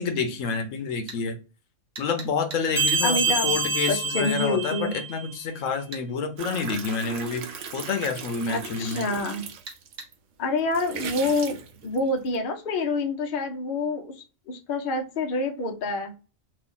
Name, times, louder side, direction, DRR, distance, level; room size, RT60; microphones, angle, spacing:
voice 1, 0.0-1.4 2.0-9.0, left 5 dB, 75° left, 1.1 m, -28 dB
sound 1, 1.1-1.2 2.0-3.0 5.9-6.1 9.7-10.1, right 4 dB, 50° right, 1.2 m, -40 dB
sound 2, 2.8-5.3, right 3 dB, 20° left, 1.3 m, -26 dB
voice 2, 3.0-3.6 3.9-5.0 8.5-9.4 10.4-14.1 14.5-16.1, left 3 dB, 50° left, 0.8 m, -27 dB
sound 3, 6.4-10.1 10.6-12.4, right 6 dB, 70° right, 0.9 m, -38 dB
3.1 x 2.4 x 3.8 m
omnidirectional pair, 1.4 m